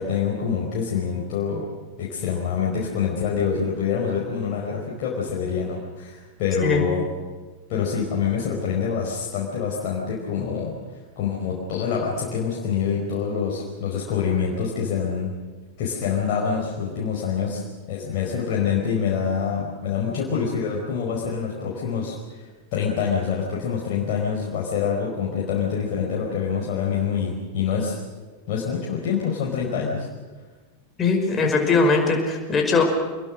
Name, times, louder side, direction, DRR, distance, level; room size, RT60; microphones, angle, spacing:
voice 1, 0.0-1.6 2.0-7.0 7.7-10.7 11.2-15.3 15.8-17.6 17.9-22.4 22.7-28.0 28.5-30.1, left 6 dB, 45° left, -4 dB, 4.9 m, -26 dB
voice 2, 31.0-32.8, left 4 dB, 20° left, 3 dB, 5.5 m, -20 dB
27.0 x 21.5 x 6.5 m, 1.3 s
figure-of-eight pair, 90°, 0 cm